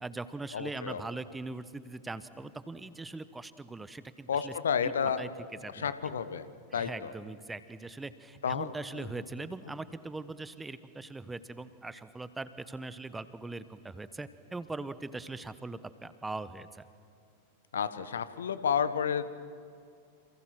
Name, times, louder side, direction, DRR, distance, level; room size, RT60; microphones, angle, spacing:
voice 1, 0.0-4.5 4.8-5.3 5.6-5.9 6.7-16.9, right 3 dB, 10° right, 14 dB, 1.1 m, -41 dB
voice 2, 0.5-1.0 4.3-5.3 5.7-6.5 6.7-7.1 8.4-8.7 8.9-9.1 17.7-19.3, left 7 dB, 65° left, 12 dB, 1.3 m, -31 dB
28.5 x 28.0 x 6.1 m, 2.3 s
figure-of-eight pair, 90°, 0 cm